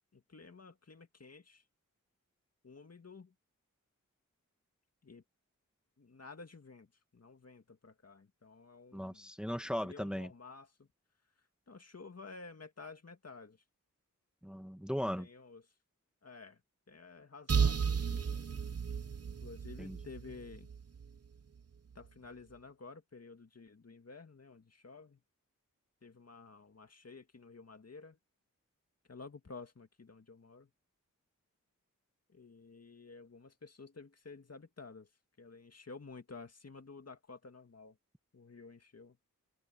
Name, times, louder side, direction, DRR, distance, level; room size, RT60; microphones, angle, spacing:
voice 1, 0.1-1.6 2.6-3.3 5.0-5.2 6.0-6.9 7.1-9.3 9.8-10.9 11.7-13.6 15.2-15.6 16.2-16.6 16.9-18.4 19.4-20.7 22.0-25.2 26.0-28.2 29.1-30.7 32.3-35.1 35.4-38.0 38.3-39.2, left 4 dB, 50° left, 2.2 m, -52 dB
voice 2, 8.9-10.3 14.4-15.3 19.8-20.0, equal, 5° right, 1.5 m, -37 dB
sound 1, 17.5-21.2, right 6 dB, 45° right, 0.9 m, -34 dB
open air
wide cardioid pair, 85°, 33 cm